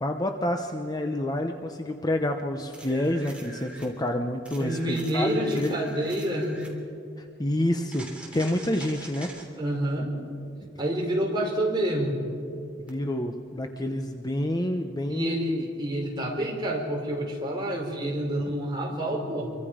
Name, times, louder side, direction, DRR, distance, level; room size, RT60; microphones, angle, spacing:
voice 1, 0.0-5.7 7.2-8.1 8.3-9.3 12.9-15.6, left 1 dB, 20° left, 5 dB, 0.9 m, -28 dB
sound 1, 2.7-3.9 4.5-6.8 7.9-9.5 12.9-13.0, right 2 dB, 5° right, 3.1 m, -45 dB
voice 2, 4.6-6.7 9.6-10.2 10.8-12.2 15.1-19.5, right 1 dB, 25° right, -1 dB, 4.0 m, -28 dB
27.0 x 24.0 x 5.1 m, 2.4 s
head